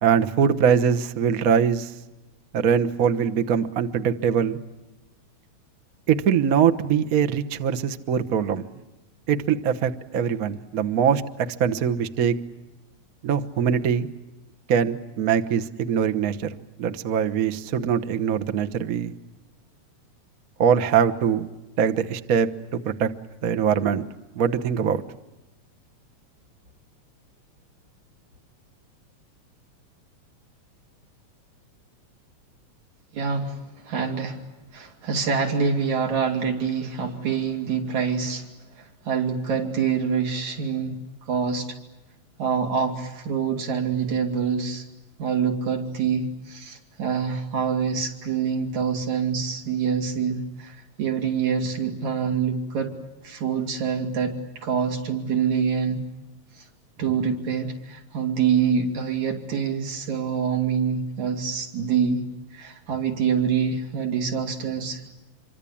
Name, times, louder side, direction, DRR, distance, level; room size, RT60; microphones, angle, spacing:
voice 1, 0.0-1.9 2.5-4.6 6.1-8.6 9.3-11.2 11.6-12.3 13.2-14.1 14.7-19.1 20.6-21.5 21.8-23.1 23.4-24.0 24.3-25.0, right 7 dB, 60° right, 7 dB, 0.9 m, -22 dB
voice 2, 33.1-34.4 34.7-41.0 41.3-41.7 42.4-44.8 45.2-53.0 53.2-56.0 56.6-56.7 57.0-62.2 62.5-65.1, right 6 dB, 80° right, 2 dB, 4.3 m, -26 dB
27.0 x 24.0 x 8.6 m, 1.0 s
omnidirectional pair, 3.3 m